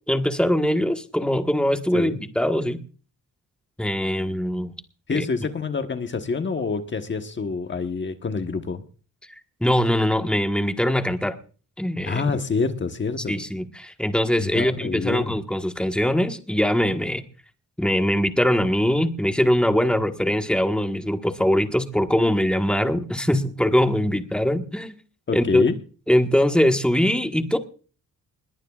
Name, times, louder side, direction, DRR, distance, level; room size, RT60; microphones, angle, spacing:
voice 1, 0.1-2.8 3.8-4.7 5.1-5.3 9.6-11.3 11.8-12.3 13.3-17.2 17.8-24.9 25.3-25.6 26.1-27.6, equal, 5° left, 6 dB, 1.4 m, -22 dB
voice 2, 5.1-8.8 12.1-13.4 14.4-15.3 25.3-25.8, left 4 dB, 35° left, 7 dB, 1.2 m, -27 dB
21.0 x 18.0 x 2.4 m, 0.39 s
wide cardioid pair, 140°, 32 cm